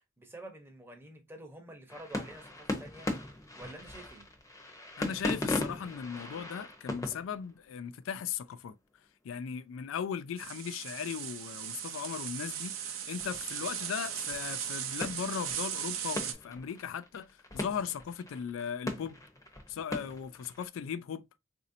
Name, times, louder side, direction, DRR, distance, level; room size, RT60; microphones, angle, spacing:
voice 1, 0.2-3.1 3.6-4.3, right 1 dB, 10° right, 0.8 m, -48 dB
sound 1, 1.9-7.9 13.1-13.5 14.3-14.5 15.0-15.8 16.2-20.7, left 1 dB, 15° left, 0.7 m, -39 dB
voice 2, 5.0-8.8 9.2-19.2 19.7-21.3, left 7 dB, 70° left, 0.3 m, -37 dB
sound 2, 10.4-16.3, right 8 dB, 70° right, 0.6 m, -38 dB
4.1 x 2.6 x 2.6 m
head